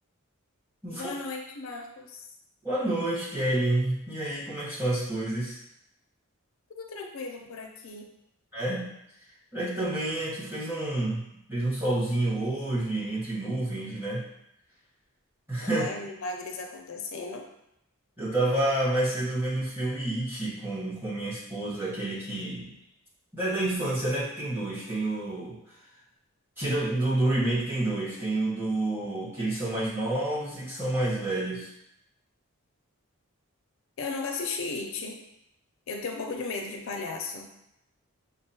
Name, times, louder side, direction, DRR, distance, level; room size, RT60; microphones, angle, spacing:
voice 1, 0.9-2.3 6.8-8.1 15.7-17.4 34.0-35.2 35.9-37.5, left 3 dB, 65° left, 2 dB, 0.4 m, -35 dB
voice 2, 2.6-5.6 8.5-8.9 9.5-11.2 11.5-14.2 15.5-15.9 18.2-22.7 23.3-25.6 26.6-31.7, right 1 dB, 10° right, -9 dB, 1.1 m, -29 dB
5.5 x 2.0 x 2.7 m, 0.81 s
head